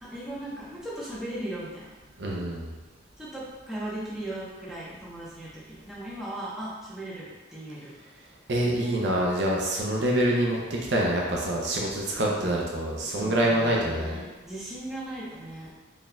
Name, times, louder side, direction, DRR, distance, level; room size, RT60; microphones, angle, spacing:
voice 1, 0.0-1.9 3.2-7.9 12.1-12.6 13.1-15.7, right 1 dB, ahead, -9 dB, 0.9 m, -38 dB
voice 2, 2.2-2.7 8.5-14.2, right 1 dB, 60° right, -2 dB, 0.5 m, -26 dB
4.2 x 3.5 x 2.2 m, 1.2 s
head